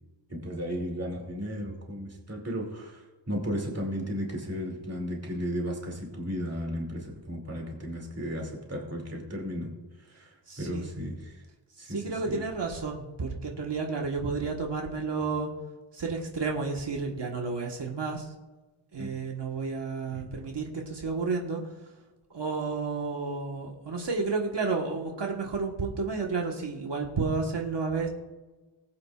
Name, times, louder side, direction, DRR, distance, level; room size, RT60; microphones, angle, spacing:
voice 1, 0.3-9.7 10.1-11.3 11.8-12.4 19.0-19.1 20.1-20.2, equal, 30° right, 0 dB, 2.7 m, -34 dB
voice 2, 10.5-10.9 11.8-15.5 15.9-18.3 18.9-21.6 22.3-28.1, right 4 dB, 60° right, 0 dB, 1.5 m, -31 dB
20.0 x 8.8 x 2.4 m, 1.2 s
wide cardioid pair, 135°, 47 cm